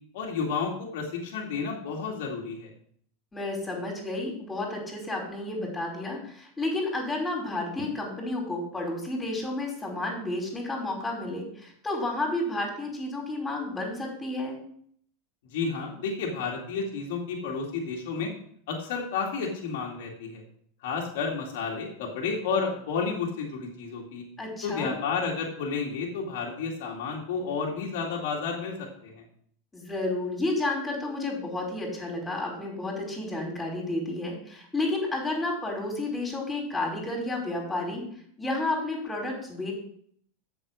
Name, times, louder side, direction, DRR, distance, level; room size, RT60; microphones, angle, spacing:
voice 1, 0.1-2.7 15.5-18.3 18.7-20.4 20.8-24.2 24.6-29.2, left 5 dB, 70° left, -2 dB, 2.1 m, -31 dB
voice 2, 3.3-14.6 24.4-24.9 29.7-38.0 38.4-39.7, left 2 dB, 15° left, -1 dB, 4.8 m, -31 dB
7.9 x 7.0 x 6.1 m, 0.62 s
hypercardioid pair, 100°, 0 cm